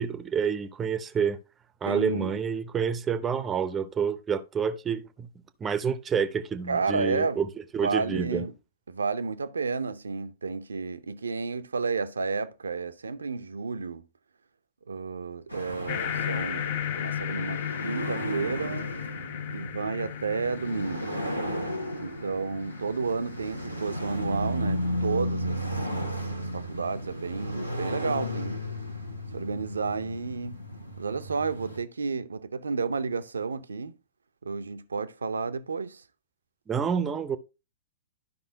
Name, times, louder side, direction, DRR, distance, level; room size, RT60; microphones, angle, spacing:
voice 1, 0.0-1.4 1.8-5.3 5.6-7.5 7.7-8.5 36.7-37.4, right 6 dB, 15° right, 0.7 m, -28 dB
voice 2, 1.9-2.4 6.7-7.4 7.8-8.5 8.9-14.0 14.9-16.7 16.9-18.9 19.5-21.1 22.0-26.1 26.4-28.6 29.3-30.6 31.0-33.9 34.4-36.0, right 4 dB, 70° right, 0.6 m, -31 dB
sound 1, 15.5-31.8, equal, 90° left, 1.3 m, -34 dB
sound 2, 15.9-24.8, left 10 dB, 45° left, 0.6 m, -36 dB
12.0 x 5.4 x 2.7 m
figure-of-eight pair, 105°, 0 cm